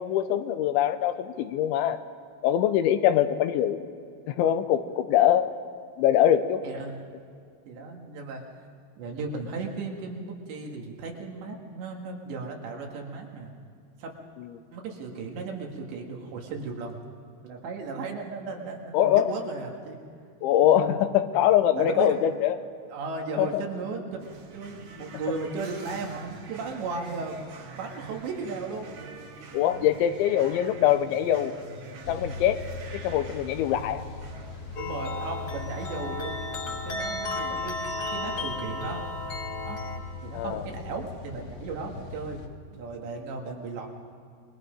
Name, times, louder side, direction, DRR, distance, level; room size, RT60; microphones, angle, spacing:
voice 1, 0.0-2.0 2.4-3.8 4.3-5.5 6.0-6.6 14.4-14.5 18.9-19.3 20.4-22.5 23.4-23.6 29.5-31.5 32.1-32.7 33.0-34.0 40.3-40.6, left 11 dB, 90° left, 10 dB, 3.2 m, -23 dB
voice 2, 6.6-7.0 7.7-8.4 9.0-13.5 14.0-14.1 14.7-17.0 17.4-20.0 20.6-20.9 21.8-22.2 22.9-24.0 24.5-27.4 27.8-28.9 29.6-29.9 34.8-39.0 39.7-39.8 40.2-42.5 42.7-43.9, right 4 dB, 70° right, 1 dB, 4.1 m, -36 dB
sound 1, 24.2-36.0, right 4 dB, 55° right, 3.0 m, -45 dB
sound 2, 32.0-42.5, left 4 dB, 70° left, 3.1 m, -40 dB
sound 3, 34.8-40.0, left 2 dB, 45° left, 3.2 m, -34 dB
27.5 x 22.5 x 5.2 m, 2.3 s
omnidirectional pair, 5.3 m